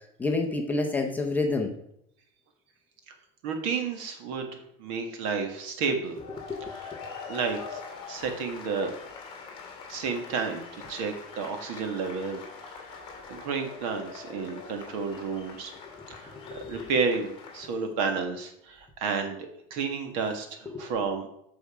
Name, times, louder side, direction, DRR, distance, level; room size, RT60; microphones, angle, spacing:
voice 1, 0.2-1.8 6.5-6.7 16.3-16.9 20.7-20.9, left 3 dB, 10° left, 2 dB, 0.8 m, -29 dB
voice 2, 3.4-6.1 6.7-6.9 7.3-7.8 8.1-8.9 9.9-12.4 13.3-15.7 16.1-16.3 16.7-19.4 19.7-21.3, right 5 dB, 60° right, 5 dB, 1.7 m, -31 dB
sound 1, 6.0-17.7, left 5 dB, 30° left, 2.3 m, -44 dB
8.8 x 6.3 x 4.8 m, 0.75 s
cardioid pair, 170°, 19 cm